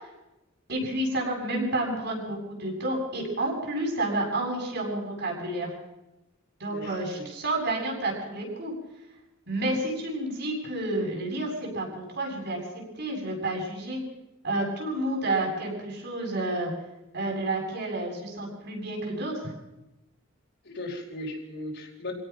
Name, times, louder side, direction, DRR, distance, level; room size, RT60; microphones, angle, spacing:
voice 1, 0.7-5.7 6.6-8.7 9.5-14.0 14.4-16.7 17.1-19.5, right 1 dB, 55° right, 0 dB, 8.0 m, -30 dB
voice 2, 6.7-7.2 20.6-22.1, left 1 dB, 60° left, 0 dB, 4.9 m, -37 dB
26.0 x 17.5 x 6.2 m, 0.97 s
head